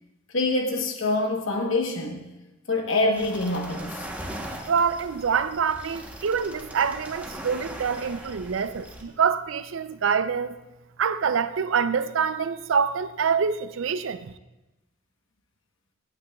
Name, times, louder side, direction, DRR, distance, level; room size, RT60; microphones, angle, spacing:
voice 1, 0.3-2.2 2.7-4.1, left 2 dB, 70° left, 1.1 m, -25 dB
sound 1, 3.1-9.0, right 1 dB, 10° right, 0.9 m, -39 dB
voice 2, 4.7-10.5 11.0-14.3, right 6 dB, 70° right, 0.4 m, -25 dB
17.0 x 8.8 x 2.3 m
head